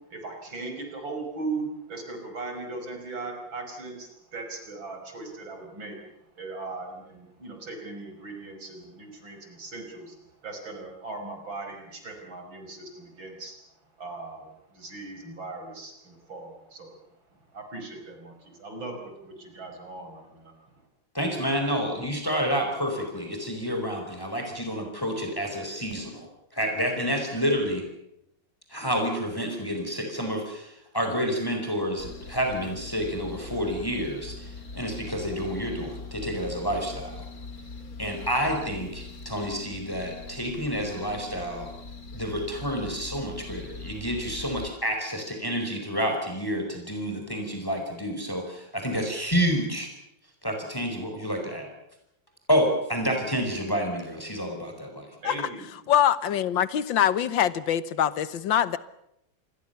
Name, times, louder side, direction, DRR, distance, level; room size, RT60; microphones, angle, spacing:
voice 1, 0.1-6.0 6.4-10.2 10.4-13.5 14.0-16.9 17.5-20.5 55.2-55.6, right 3 dB, 85° right, 4 dB, 6.1 m, -38 dB
voice 2, 21.1-27.8 28.7-37.3 38.0-41.7 42.1-49.9 50.4-51.7 52.5-55.1, equal, 10° left, 3 dB, 5.0 m, -29 dB
sound 1, 32.0-44.7, left 3 dB, 50° left, 3.0 m, -42 dB
voice 3, 55.9-58.8, left 10 dB, 80° left, 16 dB, 1.8 m, -24 dB
26.5 x 21.5 x 7.0 m, 0.80 s
omnidirectional pair, 2.1 m